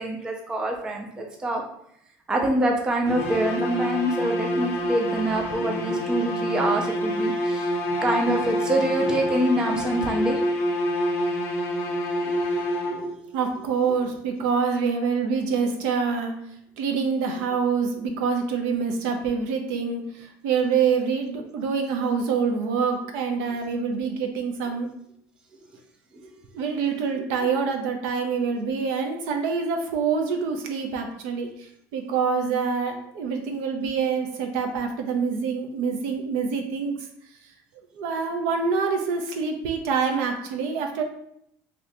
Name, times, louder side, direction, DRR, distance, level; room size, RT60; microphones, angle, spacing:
voice 1, 0.0-1.6 2.3-7.7 8.0-10.4 11.9-13.2 23.5-23.6 26.2-26.3, right 1 dB, 10° right, 2 dB, 0.3 m, -26 dB
sound 1, 3.1-13.3, equal, 40° left, 0.7 m, -27 dB
voice 2, 13.3-16.5 16.8-24.9 26.6-36.9 38.0-41.0, right 5 dB, 70° right, 4 dB, 0.5 m, -26 dB
2.7 x 2.7 x 3.2 m, 0.73 s
cardioid pair, 175°, 7 cm